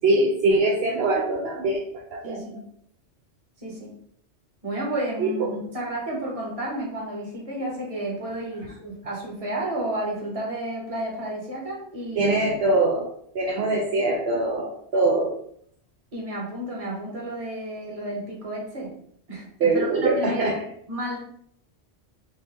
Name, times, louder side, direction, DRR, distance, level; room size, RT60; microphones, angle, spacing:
voice 1, 0.0-1.8 2.1-2.4 5.2-5.5 12.2-13.1 13.3-15.3 19.6-20.7, right 2 dB, 70° right, -1 dB, 0.8 m, -22 dB
voice 2, 2.2-2.6 3.6-3.9 4.6-12.3 16.1-18.9 19.3-20.6 20.9-21.2, right 1 dB, 35° right, -3 dB, 1.1 m, -31 dB
3.5 x 2.6 x 3.3 m, 0.66 s
omnidirectional pair, 1.1 m